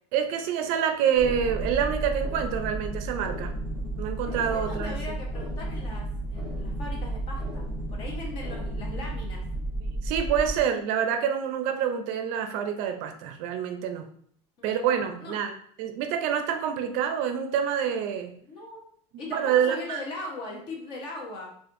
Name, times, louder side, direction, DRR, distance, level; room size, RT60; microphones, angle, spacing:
voice 1, 0.1-3.5 4.0-5.2 9.8-14.1 14.6-18.4 19.3-20.1, right 8 dB, 55° right, 7 dB, 0.5 m, -27 dB
sound 1, 1.1-10.6, right 1 dB, 5° right, 1.1 m, -32 dB
voice 2, 4.2-7.6 7.9-9.4 14.6-14.7 15.2-15.4 18.5-18.8 19.2-21.5, left 2 dB, 35° left, -1 dB, 0.9 m, -39 dB
4.2 x 2.4 x 2.5 m, 0.63 s
cardioid pair, 175°, 15 cm